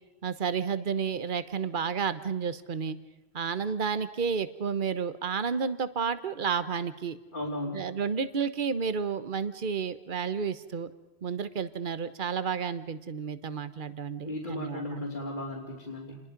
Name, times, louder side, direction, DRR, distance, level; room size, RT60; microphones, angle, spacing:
voice 1, 0.2-3.0 3.3-7.2 7.7-10.9 11.2-15.0, right 6 dB, 50° right, 12 dB, 1.2 m, -31 dB
voice 2, 7.3-7.9 14.2-16.2, left 1 dB, 50° left, -4 dB, 3.5 m, -35 dB
28.5 x 21.5 x 5.3 m, 1.1 s
omnidirectional pair, 1.1 m